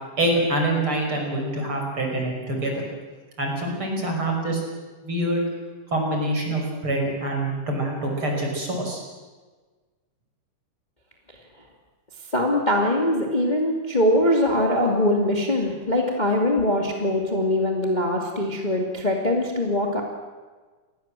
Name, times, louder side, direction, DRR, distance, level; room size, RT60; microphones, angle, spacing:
voice 1, 0.2-2.8 3.4-4.6 5.0-5.5 5.9-9.0, right 1 dB, 40° right, 1 dB, 6.6 m, -25 dB
voice 2, 12.3-20.0, left 1 dB, 15° left, 1 dB, 2.5 m, -22 dB
29.0 x 20.0 x 7.7 m, 1.3 s
omnidirectional pair, 3.6 m